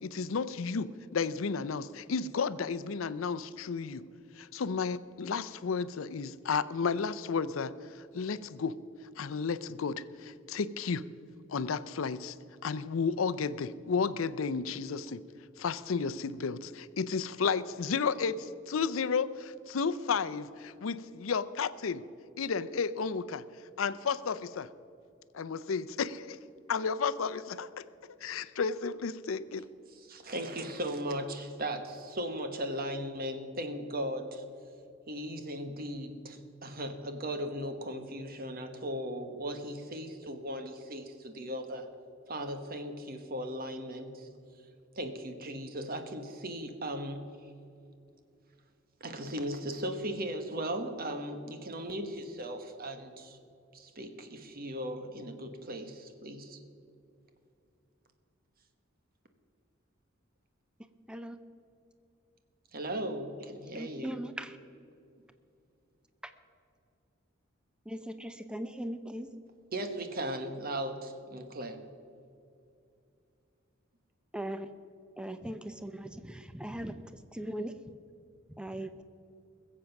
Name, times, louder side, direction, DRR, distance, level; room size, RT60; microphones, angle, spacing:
voice 1, 0.0-4.0 4.4-8.8 9.2-11.0 11.5-12.4 12.6-15.2 15.6-22.0 22.4-23.4 23.8-24.7 25.3-26.4 26.7-27.8 28.2-29.6, left 5 dB, 85° left, 15 dB, 0.5 m, -32 dB
voice 2, 30.1-34.4 35.1-41.9 42.3-44.3 45.0-47.3 49.0-53.4 53.7-56.6 62.7-64.2 69.7-71.8, right 1 dB, 50° right, 7 dB, 1.3 m, -37 dB
voice 3, 63.8-64.5 67.9-69.3 74.3-74.7 75.2-77.0 77.3-77.7 78.6-79.0, right 1 dB, 5° right, 9 dB, 0.6 m, -39 dB
21.0 x 7.7 x 5.9 m, 2.5 s
head